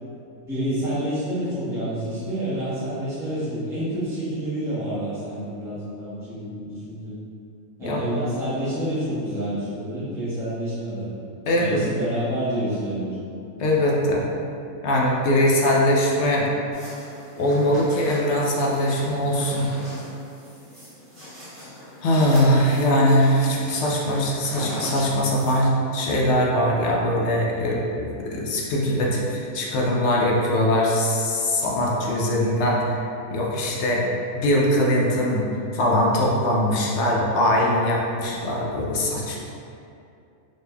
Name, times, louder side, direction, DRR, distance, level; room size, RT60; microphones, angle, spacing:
voice 1, 0.4-7.1 7.8-11.1 11.6-13.2 17.6-17.8 27.5-27.8 33.7-34.0, right 1 dB, ahead, -13 dB, 0.8 m, -28 dB
voice 2, 11.5-11.8 13.6-14.3 14.8-16.5 17.4-19.7 22.0-33.0 33.3-34.0 34.3-35.4 35.7-39.4, left 1 dB, 65° left, -3 dB, 0.8 m, -21 dB
sound 1, 16.7-25.6, left 1 dB, 30° right, 1.6 m, -39 dB
3.9 x 3.3 x 2.2 m, 2.6 s
omnidirectional pair, 1.5 m